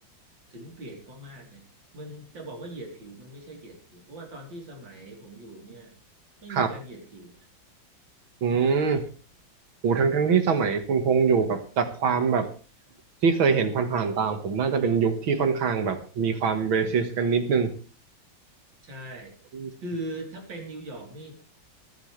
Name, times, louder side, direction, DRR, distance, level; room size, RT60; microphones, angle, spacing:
voice 1, 0.5-1.6 1.9-5.9 6.4-7.3 18.8-19.3 19.8-21.3, right 1 dB, 70° right, 1 dB, 4.3 m, -40 dB
voice 2, 8.4-9.0 9.8-12.5 13.2-17.7 19.5-19.7, right 6 dB, 90° right, 8 dB, 2.4 m, -23 dB
24.0 x 9.4 x 3.3 m, 0.38 s
omnidirectional pair, 2.1 m